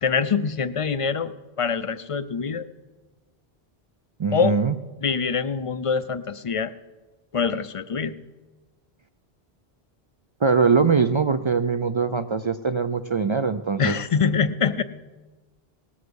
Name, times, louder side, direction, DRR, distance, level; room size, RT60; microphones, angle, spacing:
voice 1, 0.0-2.7 4.3-4.5 5.0-6.7 7.3-8.1 13.8-14.8, left 6 dB, 45° left, 13 dB, 0.5 m, -24 dB
voice 2, 4.2-4.7 10.4-13.9, right 5 dB, 55° right, 10 dB, 0.3 m, -22 dB
19.0 x 7.2 x 6.4 m, 1.2 s
omnidirectional pair, 1.0 m